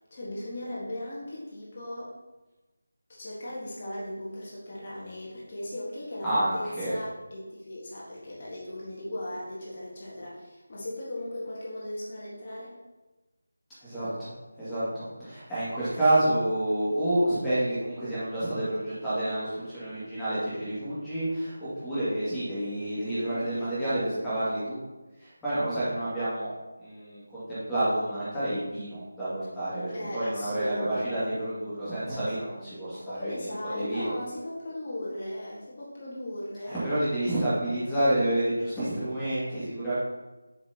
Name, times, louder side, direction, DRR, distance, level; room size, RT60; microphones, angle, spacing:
voice 1, 0.1-2.2 3.1-6.3 6.5-12.8 23.1-23.8 29.9-31.2 32.1-32.3 33.1-36.9, left 1 dB, 35° left, -7 dB, 1.6 m, -37 dB
voice 2, 6.2-6.9 13.8-14.3 14.6-24.8 25.2-26.5 26.8-33.5 33.7-34.1 36.7-39.9, right 1 dB, 5° left, -15 dB, 2.3 m, -29 dB
7.2 x 6.0 x 2.9 m, 1.1 s
figure-of-eight pair, 165°, 0 cm